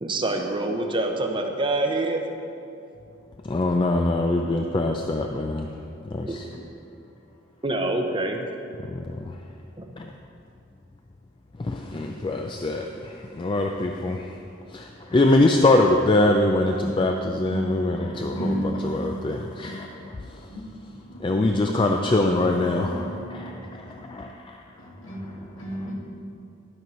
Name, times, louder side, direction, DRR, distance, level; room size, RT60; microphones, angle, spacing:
voice 1, 0.0-2.2 6.3-6.4 7.6-8.4 9.8-9.9, right 2 dB, 25° right, 4 dB, 0.7 m, -26 dB
voice 2, 3.5-5.7 6.1-6.5 8.9-9.1 10.0-10.1 11.6-14.3 14.7-20.0 21.2-24.3, left 2 dB, 25° left, 3 dB, 0.4 m, -23 dB
voice 3, 16.7-18.9 20.5-20.7 21.0-22.1 22.8-23.9 24.7-25.9, equal, 80° left, -3 dB, 2.0 m, -34 dB
12.0 x 4.6 x 5.4 m, 2.6 s
head